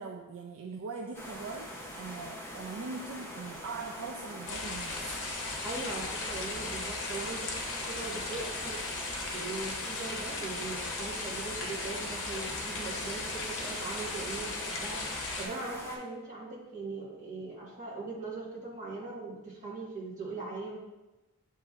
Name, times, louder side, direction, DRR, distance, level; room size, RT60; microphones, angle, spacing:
voice 1, 0.0-1.7 1.9-5.0, right 4 dB, 60° right, 2 dB, 0.4 m, -41 dB
sound 1, 1.1-16.0, equal, 10° left, 0.6 m, -43 dB
sound 2, 4.5-15.5, left 3 dB, 55° left, 0.8 m, -37 dB
voice 2, 5.6-8.8 9.3-15.0 15.4-20.8, right 3 dB, 35° right, -5 dB, 1.3 m, -40 dB
7.6 x 3.0 x 2.3 m, 1.1 s
head